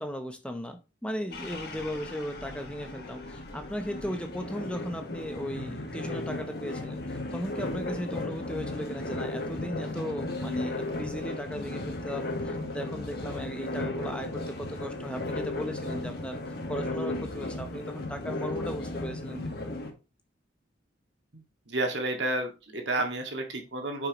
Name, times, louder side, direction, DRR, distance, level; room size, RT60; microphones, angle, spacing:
voice 1, 0.0-16.4 16.7-19.5, equal, 5° left, 0.8 m, -37 dB
sound 1, 1.3-19.9, left 2 dB, 55° left, 1.8 m, -35 dB
voice 2, 21.3-24.1, right 2 dB, 65° right, 2.0 m, -31 dB
9.2 x 5.8 x 3.1 m
head